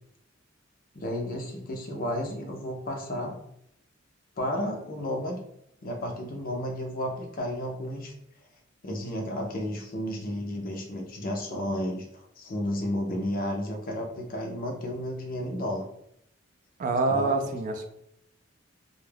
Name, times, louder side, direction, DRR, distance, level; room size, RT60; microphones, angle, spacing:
voice 1, 0.9-3.4 4.4-5.4 5.8-8.1 8.8-15.8 17.1-17.5, left 1 dB, 45° left, 2 dB, 0.5 m, -32 dB
voice 2, 16.8-17.9, right 3 dB, 40° right, 5 dB, 0.3 m, -26 dB
2.3 x 2.1 x 3.2 m, 0.76 s
head